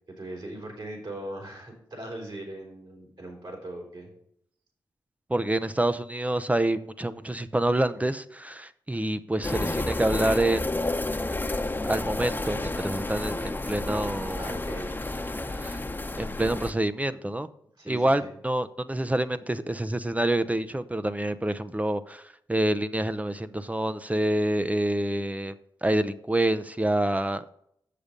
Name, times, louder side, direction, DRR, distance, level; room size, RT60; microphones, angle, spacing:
voice 1, 0.2-4.1 14.3-14.9 17.8-18.3, right 1 dB, 60° right, 0 dB, 3.8 m, -39 dB
voice 2, 5.3-10.7 11.8-14.6 15.6-15.8 16.2-17.5 17.9-22.2 22.5-27.4, right 1 dB, 15° right, 12 dB, 0.6 m, -27 dB
sound 1, 9.4-16.7, left 2 dB, 20° left, 0.9 m, -30 dB
7.0 x 6.7 x 5.2 m, 0.71 s
supercardioid pair, 40°, 9 cm